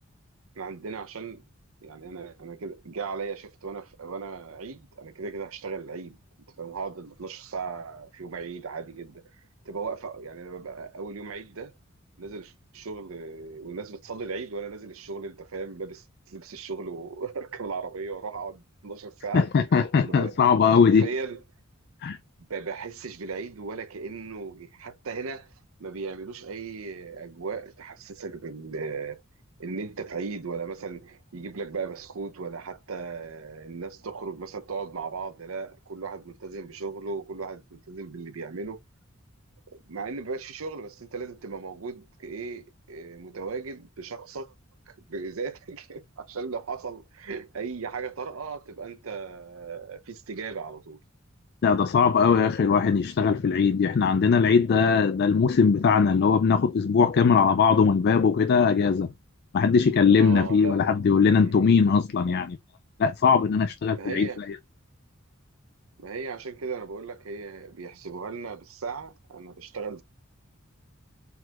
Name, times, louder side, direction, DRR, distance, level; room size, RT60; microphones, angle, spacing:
voice 1, 0.6-1.4 1.8-6.2 6.6-9.2 9.6-11.7 12.2-19.5 20.0-20.4 20.7-21.4 22.5-25.5 25.8-29.2 29.6-38.8 39.7-44.5 44.9-51.0 60.1-60.9 61.4-61.7 63.9-64.4 66.0-70.0, right 4 dB, 80° right, 0.7 m, -37 dB
voice 2, 19.3-21.1 22.0-22.2 51.6-59.1 59.5-62.6 63.0-64.6, left 5 dB, 50° left, 0.4 m, -20 dB
4.4 x 4.0 x 2.4 m
head